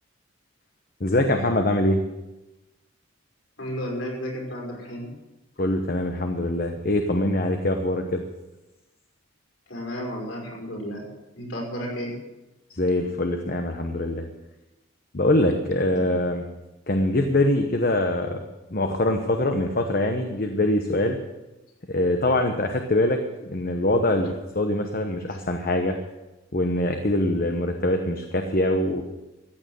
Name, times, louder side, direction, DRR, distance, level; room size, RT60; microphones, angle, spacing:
voice 1, 1.0-2.0 5.6-8.2 12.7-14.3 15.1-16.4 16.9-18.4 18.7-21.2 21.9-25.9 26.5-29.0, left 1 dB, 45° left, 5 dB, 1.0 m, -23 dB
voice 2, 3.6-5.1 9.7-11.1 11.3-12.1 15.8-16.2, equal, 60° left, -2 dB, 5.6 m, -33 dB
14.5 x 9.0 x 7.8 m, 1.0 s
head